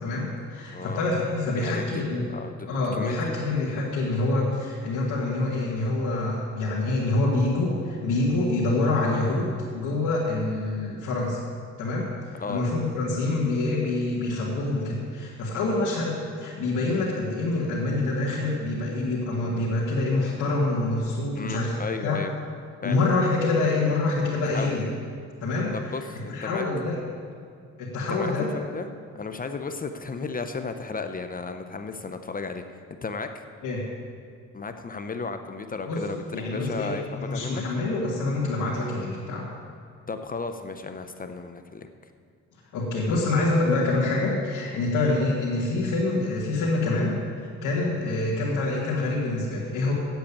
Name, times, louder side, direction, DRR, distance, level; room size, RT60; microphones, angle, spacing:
voice 1, 0.0-2.3 2.7-11.4 11.8-12.1 12.5-21.7 22.0-22.2 22.8-24.9 25.4-27.0 27.8-28.5 33.6-33.8 35.9-36.0 36.3-39.5 42.7-49.9, left 2 dB, 80° left, -7 dB, 2.0 m, -26 dB
voice 2, 0.7-1.0 1.5-2.0 2.3-3.3 12.4-12.6 21.3-22.3 22.8-23.0 24.3-24.8 25.7-26.6 28.1-28.9 29.1-33.4 34.5-36.2 36.5-37.6 40.1-41.9, left 4 dB, 30° left, 7 dB, 0.7 m, -34 dB
8.3 x 8.0 x 8.6 m, 2.2 s
cardioid pair, 90°, 30 cm